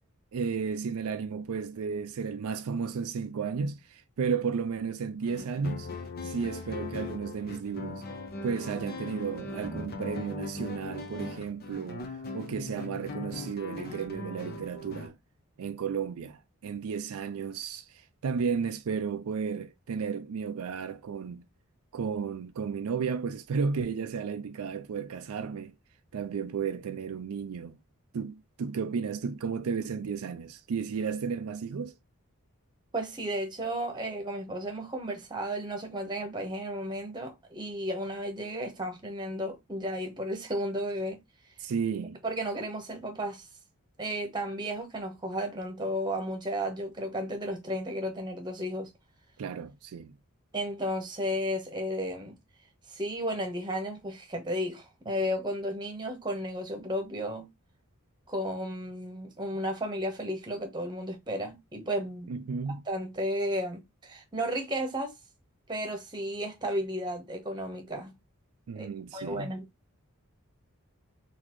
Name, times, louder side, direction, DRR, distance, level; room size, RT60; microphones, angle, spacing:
voice 1, 0.3-5.9 6.2-8.0 8.4-12.1 12.3-15.2 15.6-21.4 21.9-25.7 26.1-27.8 28.1-31.9 41.6-42.2 49.4-50.1 62.3-62.8 68.7-69.5, right 6 dB, 75° right, 0.4 m, -33 dB
sound 1, 5.2-15.1, left 3 dB, 45° left, 0.7 m, -39 dB
voice 2, 32.9-41.2 42.2-43.5 44.0-48.9 50.5-52.3 52.9-57.4 58.3-62.3 62.9-65.1 65.7-68.1 68.8-68.9 69.1-69.6, equal, 20° right, 1.0 m, -33 dB
4.0 x 2.7 x 3.0 m
head